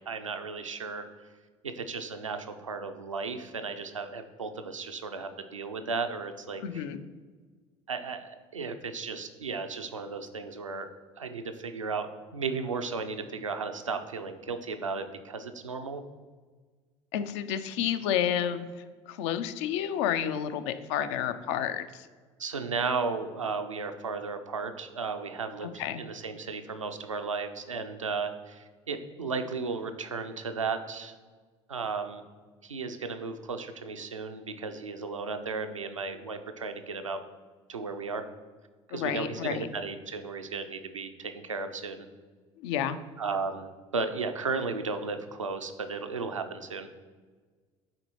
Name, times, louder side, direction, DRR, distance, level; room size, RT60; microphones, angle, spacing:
voice 1, 0.1-1.1 1.8-6.8 7.9-10.9 11.2-12.1 12.3-16.0 22.4-25.7 26.0-31.2 31.7-32.2 32.6-37.2 37.7-38.2 38.9-42.1 43.2-46.9, right 4 dB, 90° right, 7 dB, 0.4 m, -34 dB
voice 2, 6.6-7.0 17.1-18.7 19.1-22.1 25.6-26.0 38.9-39.7 42.6-43.0, left 9 dB, 65° left, 11 dB, 0.4 m, -30 dB
7.7 x 4.2 x 3.0 m, 1.4 s
figure-of-eight pair, 60°, 16 cm